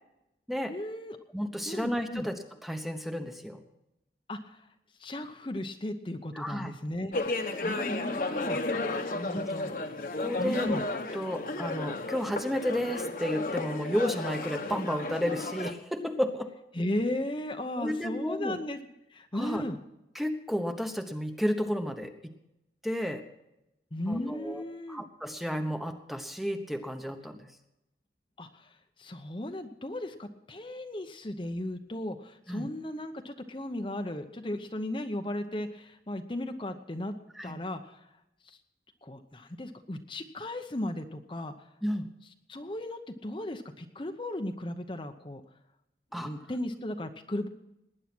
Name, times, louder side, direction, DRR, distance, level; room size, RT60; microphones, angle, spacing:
voice 1, 0.7-1.2 1.6-2.3 4.3-4.6 5.0-7.1 7.6-8.6 9.0-9.7 10.4-10.8 16.7-18.8 19.1-19.8 23.9-25.0 28.4-37.1 37.4-38.1 38.4-38.6 39.0-41.7 42.5-45.4 46.1-47.5, left 1 dB, 30° left, 6 dB, 0.8 m, -36 dB
voice 2, 1.3-3.6 6.3-6.7 9.2-9.5 10.2-10.8 11.1-16.5 17.8-18.6 19.3-19.6 20.1-22.2 22.8-23.2 24.1-24.6 24.9-27.5 32.5-32.7 37.4-37.6 41.8-42.1 46.1-46.3, equal, ahead, 6 dB, 1.0 m, -32 dB
sound 1, 7.1-15.7, left 2 dB, 50° left, 1.2 m, -33 dB
19.0 x 9.9 x 6.1 m, 0.88 s
head